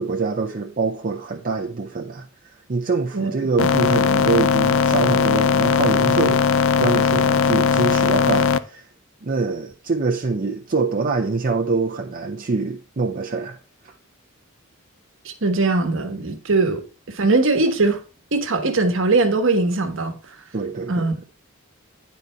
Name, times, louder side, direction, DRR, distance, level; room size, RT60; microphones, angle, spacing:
voice 1, 0.0-8.9 9.2-13.6 13.8-13.9 20.5-21.2, right 4 dB, 45° right, 0.6 m, -25 dB
sound 1, 3.6-8.6, left 6 dB, 65° left, 0.4 m, -18 dB
voice 2, 15.2-18.0 18.3-20.2 20.9-21.1, right 3 dB, 65° right, 1.2 m, -20 dB
9.6 x 4.1 x 4.4 m
head